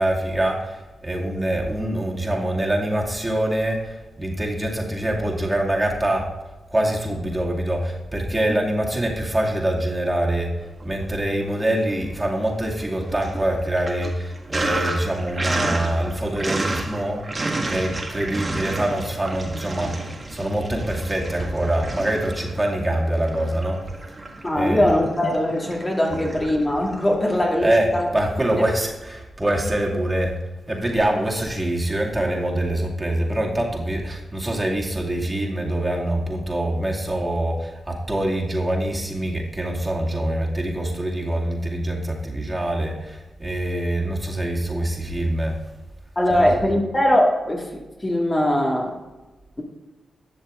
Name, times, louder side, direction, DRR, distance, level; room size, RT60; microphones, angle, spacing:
voice 1, 0.0-6.3 6.7-10.5 10.8-17.2 17.7-23.8 24.5-24.9 27.3-30.3 30.7-45.6 46.3-46.5, right 1 dB, 20° right, -1 dB, 2.3 m, -24 dB
Sink (filling or washing), 10.7-11.6 11.9-28.0, right 2 dB, 35° right, 1.7 m, -32 dB
voice 2, 24.4-28.0 46.2-49.0, left 1 dB, 25° left, -1 dB, 2.0 m, -21 dB
11.5 x 6.5 x 3.7 m, 1.1 s
supercardioid pair, 40°, 0 cm